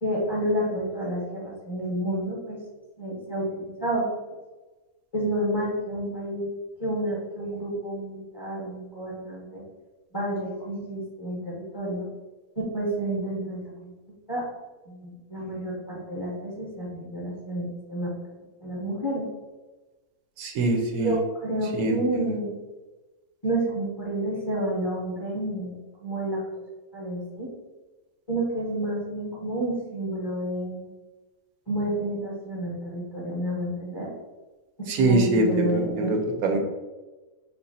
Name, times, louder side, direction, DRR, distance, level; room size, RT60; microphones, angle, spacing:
voice 1, 0.0-2.6 3.0-4.1 5.1-6.5 6.8-9.6 10.1-12.1 12.6-13.9 14.3-14.4 14.9-18.1 18.6-19.2 21.0-22.6 23.4-25.8 26.0-26.4 26.9-27.5 28.3-30.9 31.7-34.1 35.0-36.1, right 1 dB, 20° left, -5 dB, 0.8 m, -30 dB
voice 2, 20.4-21.2 21.7-22.3 34.9-36.6, right 2 dB, 75° right, 3 dB, 1.1 m, -24 dB
5.6 x 2.0 x 4.0 m, 1.2 s
omnidirectional pair, 1.6 m